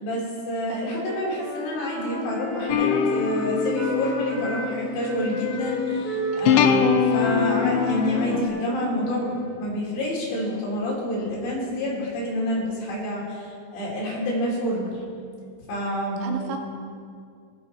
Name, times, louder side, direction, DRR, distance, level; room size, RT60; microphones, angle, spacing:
voice 1, 0.0-15.0 15.7-16.6, equal, 65° left, -5 dB, 5.0 m, -28 dB
voice 2, 0.7-1.0 7.1-7.3 16.2-16.6, right 7 dB, 85° right, 3 dB, 3.5 m, -33 dB
Wind instrument woodwind instrument, 0.9-4.7 5.0-9.5, left 2 dB, 20° left, 1.2 m, -30 dB
sound 1, 2.7-8.5, left 7 dB, 90° left, 2.5 m, -25 dB
19.5 x 7.4 x 4.2 m, 2.3 s
omnidirectional pair, 5.6 m